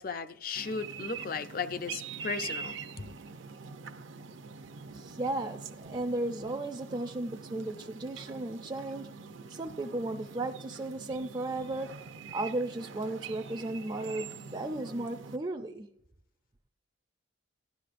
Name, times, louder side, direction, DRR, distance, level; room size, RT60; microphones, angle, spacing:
voice 1, 0.0-3.1, left 5 dB, 45° left, 0.5 m, -36 dB
sound 1, 0.5-15.4, right 5 dB, 75° right, 0.6 m, -44 dB
voice 2, 4.9-9.1 9.5-11.9 12.3-15.9, right 2 dB, 25° right, 0.4 m, -35 dB
15.5 x 11.5 x 2.5 m
head